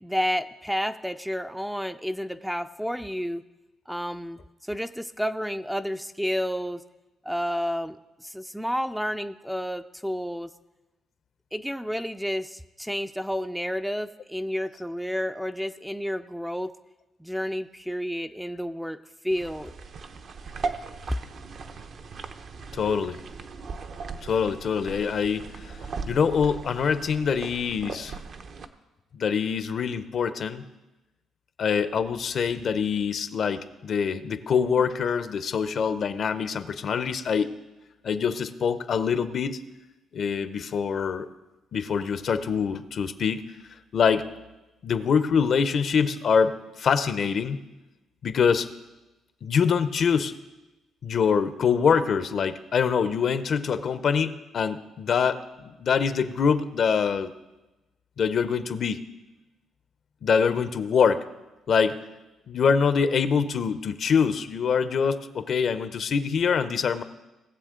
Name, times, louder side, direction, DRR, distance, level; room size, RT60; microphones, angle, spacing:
voice 1, 0.0-3.4 3.9-6.8 7.2-10.5 11.5-16.7 17.2-19.7, equal, ahead, 10 dB, 0.4 m, -30 dB
sound 1, 19.3-28.7, right 4 dB, 55° right, 0.8 m, -38 dB
voice 2, 22.7-23.2 24.2-25.8 26.1-28.2 29.1-30.6 31.6-37.5 38.0-39.6 40.1-41.3 41.7-43.5 43.9-44.3 44.8-47.6 48.2-48.7 49.4-50.3 51.0-55.4 55.6-57.3 58.2-59.1 60.2-61.2 61.7-62.0 62.5-67.0, left 6 dB, 55° left, 12 dB, 0.7 m, -24 dB
18.5 x 7.2 x 3.7 m, 1.0 s
cardioid pair, 90°, 0 cm